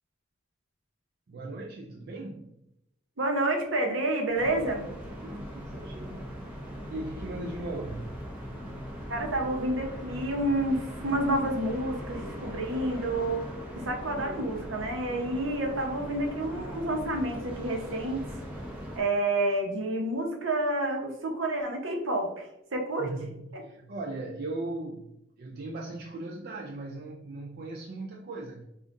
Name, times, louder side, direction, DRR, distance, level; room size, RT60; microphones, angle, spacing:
voice 1, 1.3-2.5 5.2-6.4 6.9-8.2 23.0-28.6, right 2 dB, 50° right, -1 dB, 0.4 m, -38 dB
voice 2, 3.2-4.9 9.1-13.5 13.8-18.3 19.0-22.5 22.7-23.1, right 1 dB, 75° right, 2 dB, 0.9 m, -29 dB
sound 1, 4.3-19.0, equal, 5° right, 0.8 m, -40 dB
5.1 x 2.4 x 2.5 m, 0.83 s
head